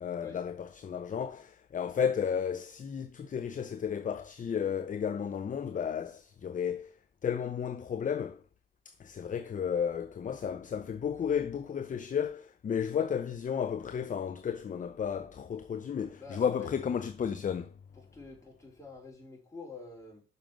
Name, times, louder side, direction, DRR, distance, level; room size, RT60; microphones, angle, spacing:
voice 1, 0.0-6.9 7.2-8.4 8.9-17.7, left 7 dB, 40° left, 0.7 m, -33 dB
voice 2, 16.2-16.7 17.9-20.2, left 4 dB, 15° left, 5.0 m, -47 dB
6.5 x 5.4 x 6.2 m
supercardioid pair, 65°, 21 cm